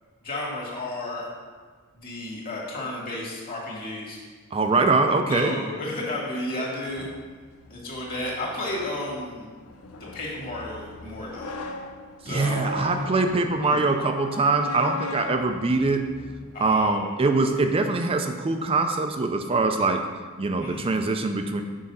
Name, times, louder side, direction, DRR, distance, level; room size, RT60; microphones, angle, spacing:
voice 1, 0.2-1.3 2.0-4.2 5.3-7.1 7.7-9.5 10.1-11.6 12.3-12.8 13.6-13.9 16.5-17.2 17.6-17.7 20.6-20.9, left 1 dB, 45° left, -3 dB, 1.8 m, -33 dB
voice 2, 4.5-5.6 12.2-16.0 16.6-20.0 20.4-21.6, right 3 dB, 25° right, 6 dB, 0.4 m, -23 dB
sound 1, 6.9-16.8, left 3 dB, 85° left, 0.6 m, -39 dB
6.4 x 4.8 x 5.5 m, 1.5 s
head